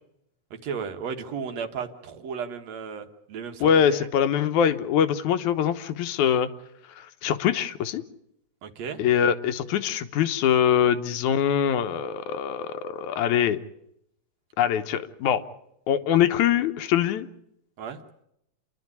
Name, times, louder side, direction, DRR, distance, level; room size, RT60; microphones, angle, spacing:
voice 1, 0.5-4.1 8.6-9.0 17.8-18.0, right 6 dB, 65° right, 6 dB, 2.5 m, -34 dB
voice 2, 3.6-6.5 7.0-8.0 9.0-13.6 14.6-15.4 15.9-17.3, left 9 dB, 85° left, 9 dB, 2.5 m, -23 dB
29.0 x 11.5 x 9.6 m, 0.78 s
omnidirectional pair, 3.3 m